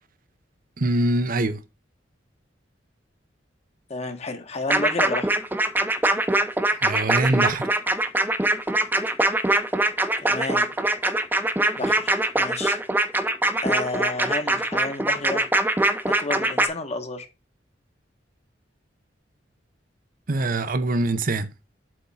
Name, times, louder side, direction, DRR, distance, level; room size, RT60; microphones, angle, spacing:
voice 1, 0.8-1.6 6.7-7.7 20.3-21.5, right 2 dB, 50° right, 0.7 m, -23 dB
voice 2, 3.9-5.3 10.2-10.7 11.8-12.8 13.6-15.5 16.2-17.3, left 2 dB, 35° left, 1.3 m, -30 dB
sound 1, 4.7-16.7, right 2 dB, 10° right, 0.8 m, -22 dB
7.8 x 3.6 x 5.5 m
head